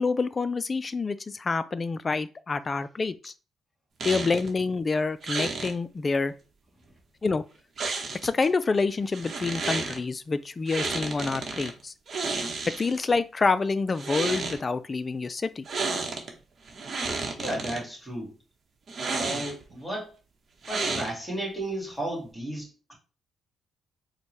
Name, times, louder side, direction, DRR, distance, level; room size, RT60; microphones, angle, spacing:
voice 1, 0.0-3.3 4.0-6.3 7.2-7.4 8.2-11.9 12.7-15.7, left 4 dB, 30° left, 0.3 m, -27 dB
sound 1, 4.0-4.5 5.2-5.7 7.8-8.5 9.1-10.0 10.7-11.7 12.1-13.1 13.9-14.6 15.7-16.3 16.7-17.8 18.9-19.7 20.6-21.4, right 4 dB, 50° right, 0.9 m, -31 dB
voice 2, 17.4-18.4 19.1-20.1 20.7-22.9, right 1 dB, 5° left, 2.1 m, -34 dB
4.3 x 2.1 x 3.1 m
cardioid pair, 90°, 0 cm